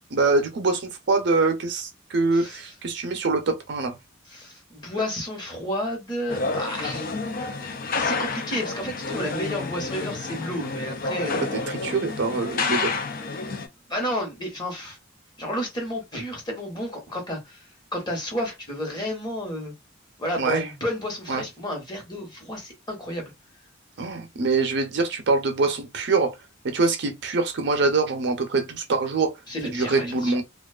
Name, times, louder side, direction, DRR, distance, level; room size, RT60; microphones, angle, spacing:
voice 1, 0.1-3.9 11.5-12.9 20.4-20.6 21.3-21.4 24.0-26.3 26.6-29.3 29.6-30.4, right 3 dB, 60° right, 0.6 m, -24 dB
voice 2, 4.3-7.1 7.9-11.4 13.9-15.0 15.4-17.6 17.9-19.7 20.2-23.3 29.5-30.4, left 1 dB, 25° left, 1.0 m, -31 dB
sound 1, 6.3-13.7, left 3 dB, 50° left, 0.5 m, -29 dB
2.5 x 2.3 x 2.3 m
head